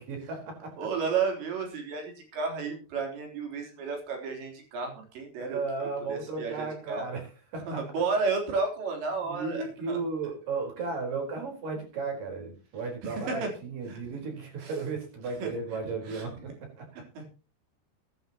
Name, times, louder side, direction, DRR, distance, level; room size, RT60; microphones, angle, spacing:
voice 1, 0.0-0.8 5.4-7.8 9.2-16.9, right 4 dB, 50° right, 2 dB, 5.8 m, -35 dB
voice 2, 0.8-5.6 6.1-7.1 7.7-10.0 13.0-13.5 13.9-14.0 14.6-14.7 15.4-15.5 16.1-16.2 16.9-17.3, right 4 dB, 85° right, 2 dB, 5.9 m, -32 dB
21.5 x 11.0 x 2.9 m, 0.35 s
omnidirectional pair, 5.0 m